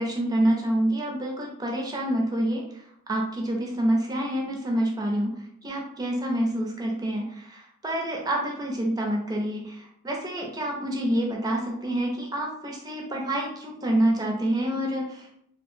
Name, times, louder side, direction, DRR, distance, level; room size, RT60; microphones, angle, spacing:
voice 1, 0.0-2.6 3.1-5.4 5.6-15.4, right 1 dB, 20° right, -1 dB, 0.4 m, -27 dB
2.6 x 2.0 x 3.1 m, 0.71 s
head